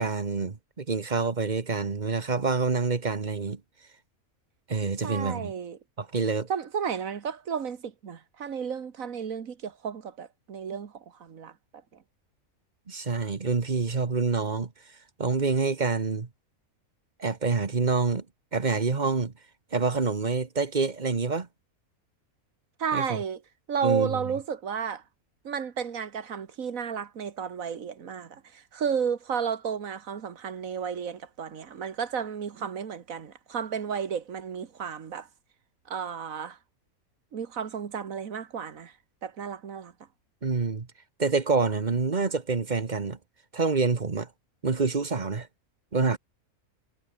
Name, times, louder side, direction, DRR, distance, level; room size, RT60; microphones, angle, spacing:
voice 1, 0.0-3.6 4.7-5.5 6.0-6.5 12.9-14.7 15.2-16.3 17.2-18.2 18.5-19.3 19.7-21.5 22.9-23.2 23.8-24.2 40.4-40.9 41.2-43.2 43.5-44.3 44.6-45.5 45.9-46.2, right 4 dB, 35° right, 1.3 m, -27 dB
voice 2, 5.0-5.8 6.5-10.9 11.2-11.5 22.8-23.4 23.7-25.0 25.4-35.3 35.9-36.6 37.3-38.9 39.2-39.9, right 7 dB, 65° right, 1.8 m, -32 dB
omnidirectional pair, 1.5 m